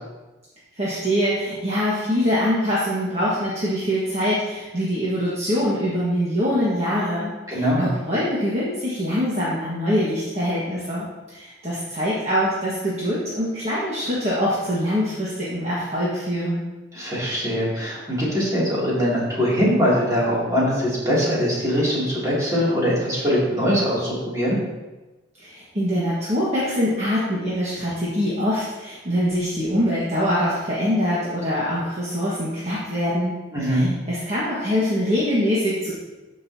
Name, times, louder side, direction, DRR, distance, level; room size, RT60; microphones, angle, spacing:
voice 1, 0.8-16.6 25.4-33.3 33.7-35.9, equal, 35° right, -8 dB, 1.5 m, -24 dB
voice 2, 7.5-7.9 16.9-24.6 33.5-33.9, equal, 15° right, -8 dB, 2.7 m, -22 dB
13.0 x 5.6 x 2.8 m, 1.1 s
head